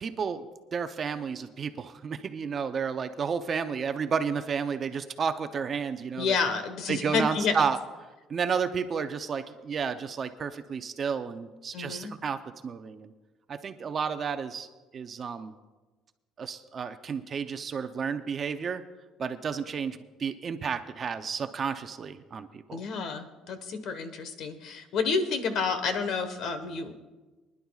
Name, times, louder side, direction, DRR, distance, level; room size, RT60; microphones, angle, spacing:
voice 1, 0.0-0.5 0.7-6.4 6.9-7.8 8.3-13.1 13.5-14.7 14.9-15.6 16.4-18.8 19.2-22.8, right 6 dB, 35° right, 9 dB, 0.6 m, -31 dB
voice 2, 6.2-7.6 11.7-12.1 22.7-26.9, left 5 dB, 55° left, 9 dB, 1.3 m, -30 dB
23.5 x 11.0 x 2.4 m, 1.2 s
cardioid pair, 145°, 0 cm